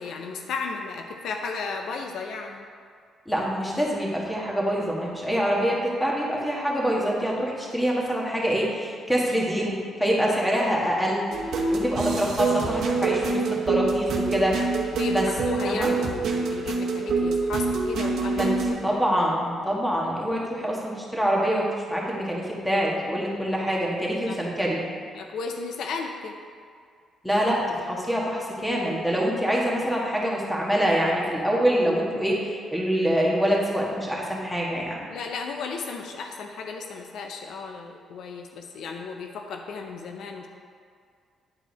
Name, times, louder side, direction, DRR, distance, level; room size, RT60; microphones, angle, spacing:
voice 1, 0.0-2.6 14.9-15.1 15.5-19.0 24.3-24.4 25.1-26.3 29.5-29.9 35.1-40.5, left 4 dB, 75° left, 3 dB, 0.5 m, -34 dB
voice 2, 3.2-11.2 11.7-14.6 15.1-15.2 15.6-15.9 18.4-24.8 27.2-35.0, equal, 5° left, -3 dB, 1.7 m, -25 dB
sound 1, 11.3-18.7, right 4 dB, 70° right, 0.9 m, -26 dB
9.8 x 4.5 x 4.1 m, 2.1 s
cardioid pair, 90°, 0 cm